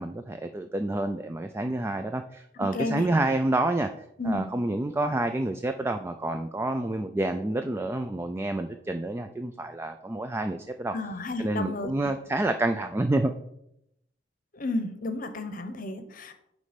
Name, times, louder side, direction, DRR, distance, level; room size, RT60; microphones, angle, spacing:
voice 1, 0.0-3.9 4.2-11.0 11.4-13.3, right 2 dB, 15° right, 7 dB, 0.3 m, -28 dB
voice 2, 2.6-3.1 4.2-4.5 10.9-12.1 14.5-16.3, left 2 dB, 50° left, 8 dB, 0.8 m, -32 dB
9.3 x 3.2 x 5.1 m, 0.78 s
head